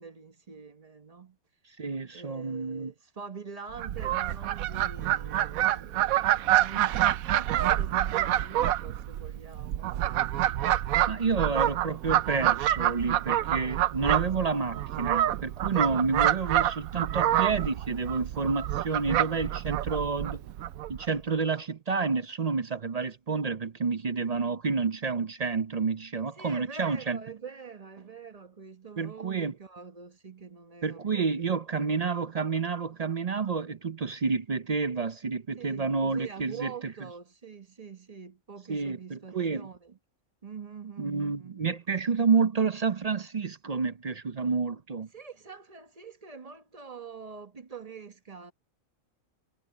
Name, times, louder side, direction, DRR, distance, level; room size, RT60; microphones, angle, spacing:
voice 1, 0.0-1.4 2.1-10.2 15.8-16.1 26.3-31.6 35.6-40.0 40.4-41.8 45.1-48.5, right 6 dB, 30° right, 1.1 m, -45 dB
voice 2, 1.8-2.9 11.1-20.4 20.9-27.2 29.0-29.5 30.8-36.7 38.7-39.7 41.0-45.1, right 5 dB, 50° right, 0.4 m, -29 dB
Fowl, 3.7-21.1, right 13 dB, 80° right, 1.1 m, -27 dB
omnidirectional pair, 1.5 m